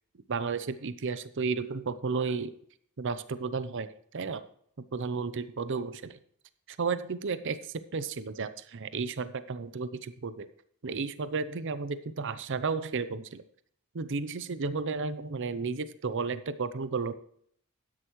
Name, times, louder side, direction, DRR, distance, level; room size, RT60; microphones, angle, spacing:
voice 1, 0.3-2.6 3.0-4.4 4.9-6.2 6.7-10.5 10.8-13.4 13.9-17.1, right 4 dB, 55° right, 13 dB, 0.6 m, -33 dB
12.5 x 10.0 x 3.1 m, 0.64 s
head